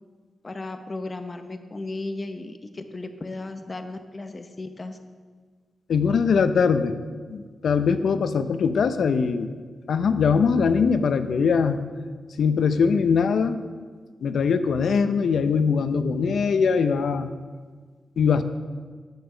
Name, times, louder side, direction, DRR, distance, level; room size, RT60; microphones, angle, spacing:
voice 1, 0.4-5.0, left 2 dB, 25° left, 7 dB, 0.7 m, -35 dB
voice 2, 5.9-6.9 7.3-9.5 9.9-11.8 12.4-13.6 14.2-17.3 18.2-18.4, left 5 dB, 70° left, 11 dB, 0.6 m, -21 dB
10.5 x 7.0 x 6.6 m, 1.5 s
wide cardioid pair, 140°, 0 cm